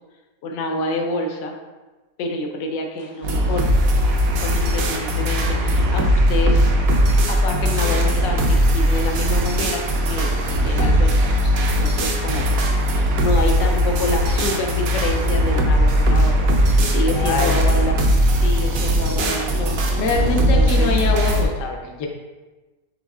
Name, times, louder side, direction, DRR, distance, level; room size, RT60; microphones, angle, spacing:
voice 1, 0.4-1.5 2.2-3.7 4.4-6.6 7.3-12.5 12.9-18.0 18.3-19.8 20.4-20.9, left 1 dB, 85° left, 2 dB, 1.3 m, -28 dB
sound 1, 3.0-19.0, right 3 dB, 85° right, 1.3 m, -36 dB
sound 2, 3.2-21.4, equal, 65° right, 0.9 m, -19 dB
voice 2, 16.8-17.6 19.9-22.1, left 3 dB, 60° left, 1 dB, 0.9 m, -24 dB
5.3 x 4.0 x 2.3 m, 1.2 s
omnidirectional pair, 1.9 m